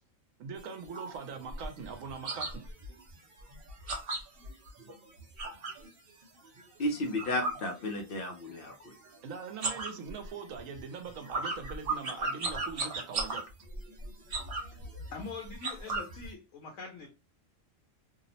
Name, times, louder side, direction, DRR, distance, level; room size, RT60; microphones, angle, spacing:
voice 1, 0.4-2.6 9.2-13.4, right 5 dB, 80° right, 1.0 m, -42 dB
sound 1, 0.6-5.9 6.2-8.4 8.6-9.2 9.5-16.3, right 3 dB, 55° right, 0.8 m, -37 dB
voice 2, 6.8-8.9, left 1 dB, 60° left, 0.6 m, -33 dB
voice 3, 15.1-17.1, left 4 dB, 75° left, 0.9 m, -43 dB
2.7 x 2.0 x 2.6 m
omnidirectional pair, 1.4 m